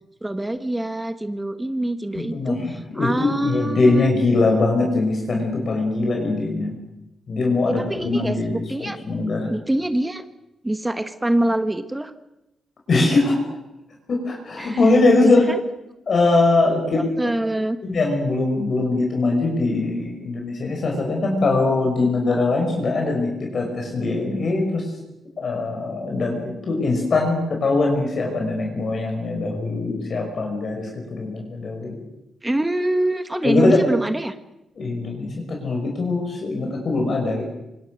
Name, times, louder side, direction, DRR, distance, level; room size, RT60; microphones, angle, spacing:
voice 1, 0.2-4.1 7.6-9.0 9.5-10.2 10.6-12.1 14.6-14.9 15.2-15.6 16.9-17.8 32.4-34.3, right 1 dB, 10° right, 9 dB, 1.2 m, -25 dB
voice 2, 2.2-6.8 7.3-9.5 12.9-13.4 14.1-15.4 16.1-17.0 17.8-24.9 25.4-32.0 33.4-33.8 34.8-37.4, left 3 dB, 45° left, 1 dB, 5.8 m, -21 dB
27.5 x 25.5 x 6.5 m, 0.91 s
wide cardioid pair, 155°, 0 cm